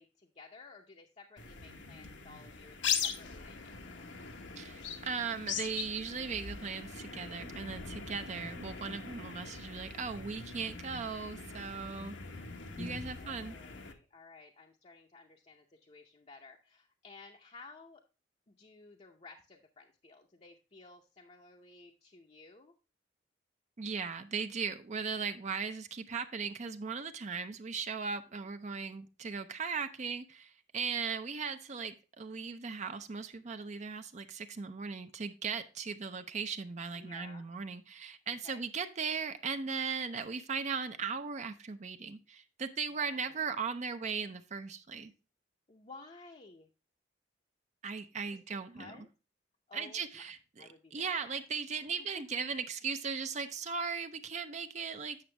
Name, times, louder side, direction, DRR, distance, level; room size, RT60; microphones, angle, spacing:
voice 1, 0.0-4.0 12.8-18.0 18.5-22.7 36.9-37.5 38.3-38.6 42.9-43.5 45.7-46.7 48.3-49.1 49.7-50.2 50.6-51.4 51.7-52.2 52.5-52.6, left 3 dB, 35° left, 1 dB, 0.7 m, -55 dB
sound 1, 1.4-13.9, left 6 dB, 85° left, 1.1 m, -41 dB
voice 2, 4.6-12.2 12.8-13.5 23.8-45.1 47.8-48.9 49.7-55.3, right 5 dB, 40° right, 8 dB, 0.5 m, -38 dB
8.7 x 6.1 x 3.2 m, 0.32 s
head